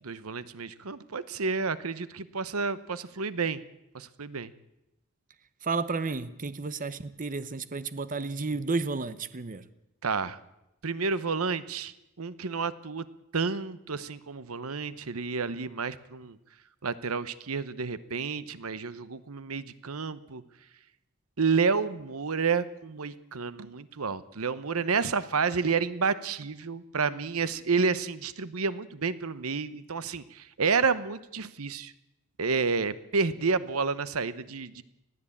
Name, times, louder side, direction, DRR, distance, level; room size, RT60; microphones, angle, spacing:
voice 1, 0.0-3.6 3.9-4.5 10.0-10.4 10.8-13.0 13.3-16.4 16.8-20.4 21.4-31.9 32.4-34.8, right 5 dB, 85° right, 1.0 m, -30 dB
voice 2, 5.6-9.6, right 3 dB, 40° right, 0.8 m, -32 dB
21.0 x 15.0 x 8.6 m
head